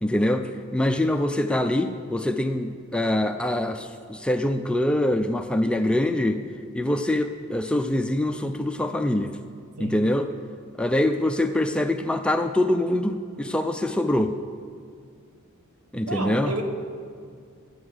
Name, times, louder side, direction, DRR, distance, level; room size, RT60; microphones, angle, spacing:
voice 1, 0.0-6.4 6.7-9.4 9.8-10.3 10.8-14.4 15.9-16.5, left 1 dB, 5° left, 6 dB, 0.4 m, -24 dB
voice 2, 16.0-16.6, right 2 dB, 75° right, 4 dB, 1.4 m, -31 dB
12.0 x 8.6 x 6.4 m, 2.2 s
head